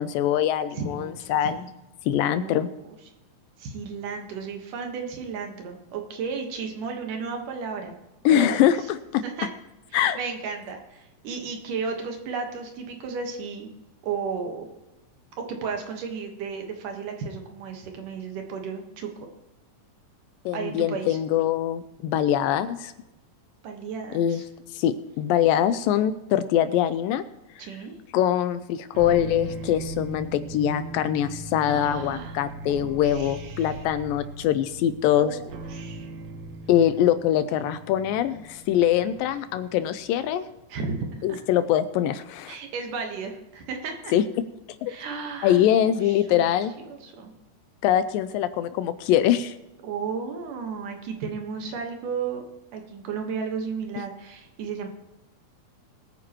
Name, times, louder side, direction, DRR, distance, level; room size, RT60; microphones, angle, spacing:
voice 1, 0.0-1.6 2.1-2.7 8.3-9.2 9.9-10.2 20.5-22.9 24.1-24.4 24.7-27.2 28.1-35.4 36.7-40.4 41.2-42.6 44.1-44.2 44.8-44.9 45.4-46.7 47.8-49.6, left 11 dB, 80° left, 12 dB, 2.1 m, -23 dB
voice 2, 0.8-1.2 1.5-1.7 2.2-2.9 3.6-8.0 8.4-8.7 9.2-9.5 9.9-13.7 14.0-14.7 15.4-19.1 20.5-21.2 23.6-24.4 27.6-27.9 31.6-32.4 32.7-33.8 35.2-36.1 40.7-41.4 42.5-44.1 44.9-46.2 46.9-47.3 49.8-52.4 52.7-54.9, right 5 dB, 65° right, 4 dB, 2.7 m, -34 dB
sound 1, 28.9-40.3, right 2 dB, 90° right, 1.4 m, -39 dB
21.5 x 9.3 x 3.0 m, 1.0 s
omnidirectional pair, 4.2 m